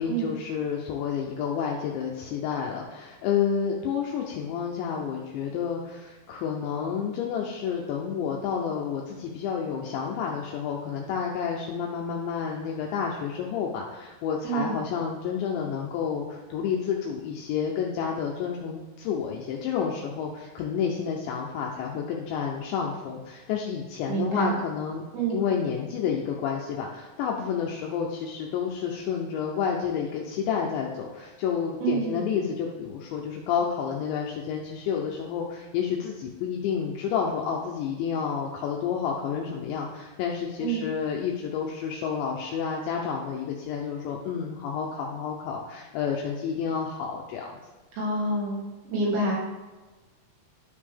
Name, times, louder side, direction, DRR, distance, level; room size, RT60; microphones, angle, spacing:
voice 1, 0.0-25.0 25.3-47.5, left 7 dB, 80° left, -1 dB, 2.6 m, -30 dB
voice 2, 14.4-14.8 24.1-24.6 25.1-25.4 31.8-32.2 40.6-40.8 47.9-48.6 48.9-49.4, right 3 dB, 65° right, -4 dB, 4.0 m, -27 dB
12.5 x 5.3 x 3.5 m, 1.2 s
omnidirectional pair, 5.9 m